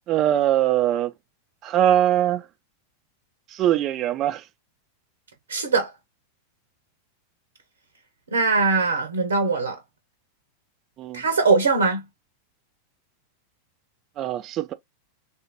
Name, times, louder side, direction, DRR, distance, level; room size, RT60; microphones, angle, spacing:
voice 1, 0.1-1.1 1.6-2.4 3.5-4.4 11.0-11.2 14.2-14.7, right 12 dB, 35° right, 0.4 m, -22 dB
voice 2, 5.5-5.9 8.3-9.8 11.1-12.0, right 4 dB, 70° right, 0.7 m, -21 dB
3.4 x 2.6 x 2.9 m
figure-of-eight pair, 90°, 0 cm